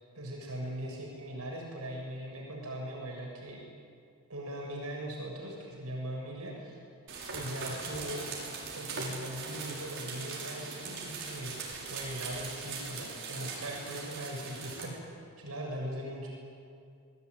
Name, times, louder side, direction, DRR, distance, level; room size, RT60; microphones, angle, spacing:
voice 1, 0.1-3.6 4.3-6.8 7.3-8.3 8.7-11.6 11.9-16.3, right 1 dB, 85° right, 0 dB, 7.2 m, -40 dB
sound 1, 7.1-14.9, right 4 dB, 55° right, 6.5 m, -40 dB
28.0 x 21.5 x 9.9 m, 2.4 s
head